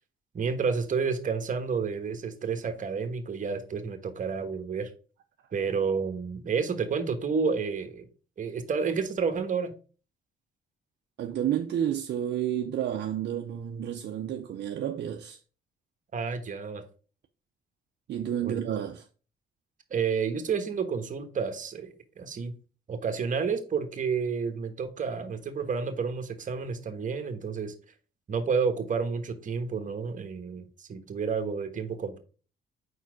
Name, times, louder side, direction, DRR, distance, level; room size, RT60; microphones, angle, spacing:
voice 1, 0.3-4.9 5.5-8.1 8.4-9.7 16.1-16.8 18.4-18.6 19.9-22.5 22.9-27.7 28.3-32.2, right 5 dB, 40° right, 1.2 m, -30 dB
voice 2, 11.2-15.4 18.1-19.1, right 10 dB, 60° right, 0.6 m, -30 dB
4.7 x 4.5 x 4.7 m
cardioid pair, 90°, 20 cm